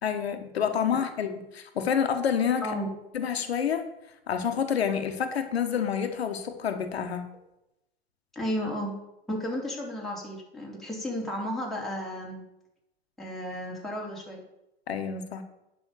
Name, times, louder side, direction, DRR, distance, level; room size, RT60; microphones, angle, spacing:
voice 1, 0.0-2.7 3.1-3.8 4.3-7.2 14.9-15.4, left 7 dB, 85° left, 7 dB, 1.4 m, -28 dB
voice 2, 8.3-8.9 9.3-12.4 13.2-14.4, equal, ahead, -4 dB, 3.8 m, -33 dB
10.0 x 5.7 x 6.9 m, 0.88 s
hypercardioid pair, 95°, 31 cm